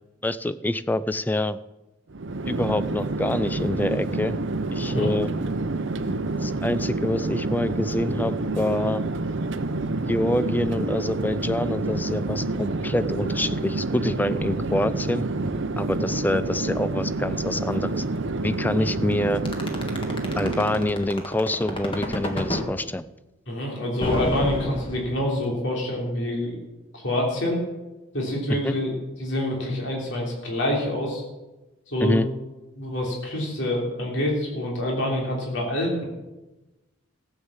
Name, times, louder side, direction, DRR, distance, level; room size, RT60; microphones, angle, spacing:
voice 1, 0.2-1.6 2.5-4.4 4.7-5.3 6.4-9.0 10.1-15.2 15.8-18.0 18.4-19.4 20.4-23.0 28.6-28.8 32.0-32.3, left 1 dB, 10° left, 14 dB, 0.3 m, -26 dB
Chatter / Fixed-wing aircraft airplane, 2.1-21.0, right 2 dB, 60° right, 0.7 m, -28 dB
voice 2, 4.8-5.1 18.8-18.9 23.5-26.6 26.9-27.6 28.1-28.9 29.2-31.2 31.9-32.2 32.8-36.0, left 1 dB, 60° left, -1 dB, 3.2 m, -26 dB
sound 1, 19.5-22.7 24.0-25.4, left 1 dB, 25° left, 1.6 m, -29 dB
14.5 x 8.0 x 7.2 m, 1.1 s
head